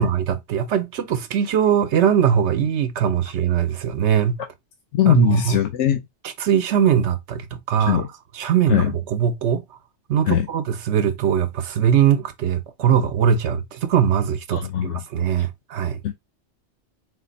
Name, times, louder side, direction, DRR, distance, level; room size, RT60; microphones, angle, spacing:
voice 1, 0.0-4.4 5.0-5.6 6.2-8.1 8.3-9.6 10.1-16.0, right 8 dB, 75° right, 0.9 m, -21 dB
voice 2, 5.0-6.0 7.9-8.0 8.7-8.9 10.3-10.4 14.5-14.9 16.0-16.1, left 11 dB, 80° left, 1.0 m, -20 dB
4.2 x 2.5 x 4.0 m
omnidirectional pair, 1.2 m